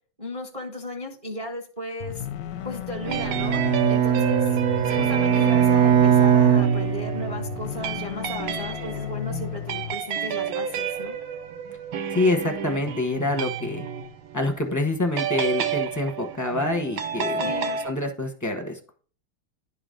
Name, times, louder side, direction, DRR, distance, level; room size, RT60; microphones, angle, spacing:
voice 1, 0.2-2.3 2.6-3.6 3.9-11.2 17.4-17.8, left 1 dB, 25° right, 2 dB, 0.8 m, -35 dB
sound 1, 2.0-10.0, left 11 dB, 70° left, 0.9 m, -34 dB
sound 2, 3.0-14.5 15.2-17.9, right 7 dB, 85° right, 1.7 m, -31 dB
Bowed string instrument, 3.1-7.5, right 9 dB, 65° right, 0.8 m, -20 dB
voice 2, 12.1-13.9 14.3-17.5 17.8-18.8, left 2 dB, 15° left, 3 dB, 0.6 m, -26 dB
11.0 x 4.0 x 5.1 m, 0.41 s
omnidirectional pair, 2.2 m